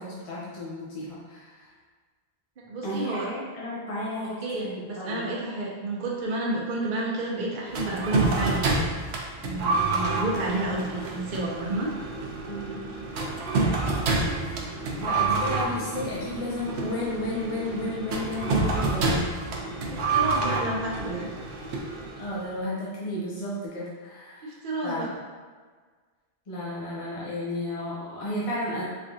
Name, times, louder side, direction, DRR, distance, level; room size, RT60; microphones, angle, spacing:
voice 1, 0.0-1.7 2.8-5.2 12.4-12.9 15.0-19.3 22.2-25.2 26.5-28.8, left 1 dB, 40° left, -7 dB, 0.6 m, -33 dB
voice 2, 2.7-3.3 4.4-8.7 9.4-11.9 19.7-21.3 24.4-25.1, right 2 dB, 55° right, -4 dB, 0.8 m, -30 dB
sound 1, 7.7-22.4, right 3 dB, 85° right, 0.9 m, -28 dB
3.5 x 3.3 x 2.6 m, 1.5 s
omnidirectional pair, 1.1 m